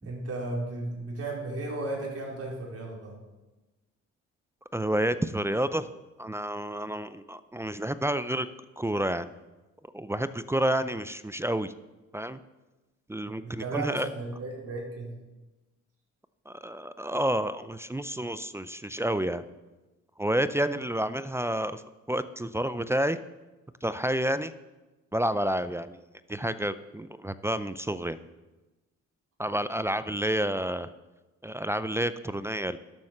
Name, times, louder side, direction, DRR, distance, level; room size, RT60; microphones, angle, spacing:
voice 1, 0.0-3.2 13.4-15.1, right 2 dB, 50° right, -2 dB, 4.2 m, -35 dB
voice 2, 4.7-5.9 6.2-8.5 8.8-9.3 9.9-11.7 12.1-12.4 13.1-14.1 16.5-19.4 20.2-21.8 22.1-23.2 23.8-24.5 25.1-26.0 26.3-28.2 29.4-30.9 31.4-32.8, right 1 dB, 10° right, 13 dB, 0.5 m, -29 dB
11.5 x 7.6 x 6.6 m, 1.1 s
cardioid pair, 90°, 30 cm